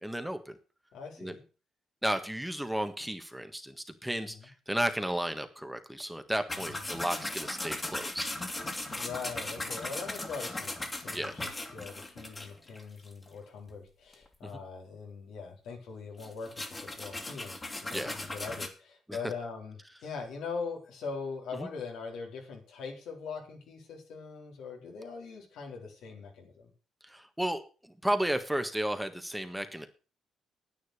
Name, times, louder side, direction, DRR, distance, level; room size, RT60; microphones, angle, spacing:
voice 1, 0.0-0.6 1.2-1.3 2.0-8.3 11.1-11.4 14.4-14.5 17.9-18.2 19.1-19.3 21.5-21.7 27.0-29.9, right 1 dB, 5° right, 8 dB, 1.5 m, -33 dB
voice 2, 0.9-1.4 4.1-4.2 9.0-10.8 11.0-11.4 11.7-16.6 17.0-17.6 17.8-19.7 20.0-26.7, left 5 dB, 85° left, 1 dB, 3.9 m, -41 dB
sound 1, 6.5-13.3 13.7-13.8 14.1-14.3 16.2-18.7, left 2 dB, 20° left, 2.3 m, -38 dB
9.9 x 9.3 x 6.6 m, 0.36 s
cardioid pair, 90°, 0 cm